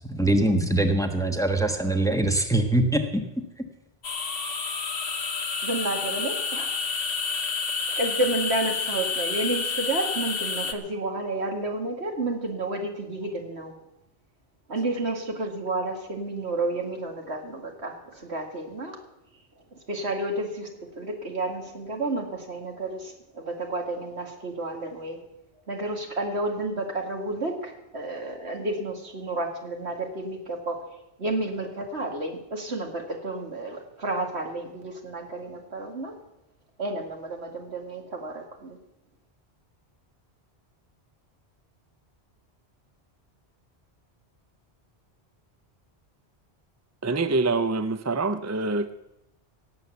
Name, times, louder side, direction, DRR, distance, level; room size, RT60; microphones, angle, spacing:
voice 1, 0.1-3.2, right 1 dB, 5° left, 5 dB, 1.3 m, -23 dB
sound 1, 4.0-10.7, left 5 dB, 65° left, 1.3 m, -29 dB
voice 2, 5.6-6.7 7.2-7.4 7.9-13.7 14.7-19.0 19.9-20.7 21.0-25.2 25.7-30.8 31.2-36.1 36.8-38.8, right 2 dB, 85° right, 3 dB, 2.4 m, -31 dB
voice 3, 47.0-48.9, right 3 dB, 20° right, 11 dB, 0.5 m, -25 dB
17.5 x 7.9 x 7.0 m, 0.86 s
omnidirectional pair, 1.1 m